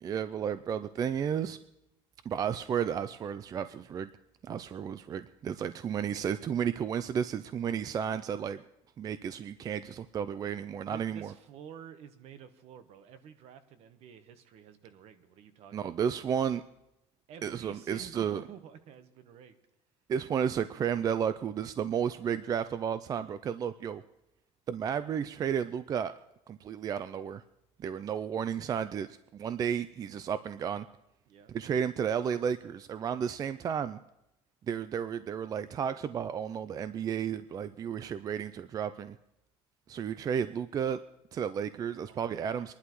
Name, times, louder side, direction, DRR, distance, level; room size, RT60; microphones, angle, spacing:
voice 1, 0.0-1.6 2.3-4.1 4.4-8.6 9.0-11.3 15.7-16.6 17.4-18.4 20.1-24.0 24.7-26.1 26.5-27.4 27.8-30.9 31.5-34.0 34.7-39.2 39.9-41.0 41.3-42.7, right 8 dB, 30° right, 13 dB, 0.4 m, -32 dB
voice 2, 10.9-16.1 17.3-19.6 31.3-31.5 42.0-42.2 42.6-42.7, right 8 dB, 60° right, 10 dB, 1.1 m, -50 dB
24.0 x 11.5 x 3.1 m, 0.86 s
cardioid pair, 130°, 12 cm